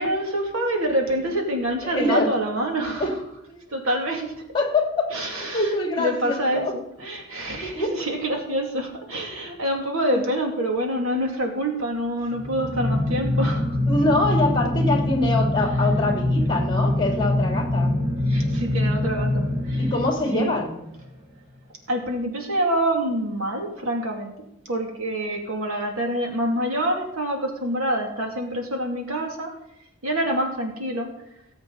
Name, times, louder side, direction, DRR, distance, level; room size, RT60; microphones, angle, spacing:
voice 1, 0.0-3.1 3.7-4.4 5.1-13.8 18.2-19.9 20.3-20.6 21.9-24.4 24.7-29.6 30.0-31.1, right 1 dB, 85° right, 1 dB, 2.6 m, -26 dB
voice 2, 1.8-2.4 3.0-3.1 3.5-3.6 4.5-6.7 7.6-8.0 10.1-10.2 13.9-18.0 19.8-20.8, left 2 dB, 20° left, 1 dB, 2.9 m, -24 dB
sound 1, 12.3-20.7, left 1 dB, 20° right, 2.9 m, -24 dB
18.5 x 8.0 x 4.1 m, 0.79 s
head